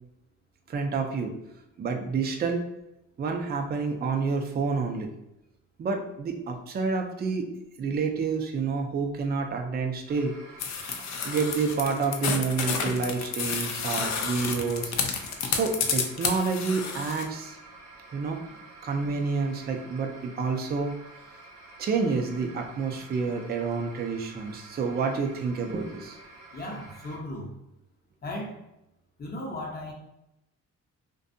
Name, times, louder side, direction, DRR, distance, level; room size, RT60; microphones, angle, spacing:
voice 1, 0.7-1.3 1.8-2.6 3.2-5.1 5.8-7.5 7.8-10.3 10.9-14.9 15.5-17.6 18.1-18.4 18.8-21.0 21.8-26.2, right 4 dB, 35° right, 3 dB, 0.4 m, -29 dB
sound 1, 10.1-27.2, right 3 dB, 80° right, 0.7 m, -49 dB
sound 2, 10.6-17.2, left 6 dB, 65° left, 0.5 m, -30 dB
voice 2, 26.5-27.5 28.2-28.6 29.2-29.9, left 1 dB, 30° left, -1 dB, 0.8 m, -36 dB
2.6 x 2.2 x 2.6 m, 0.89 s
cardioid pair, 90°, 30 cm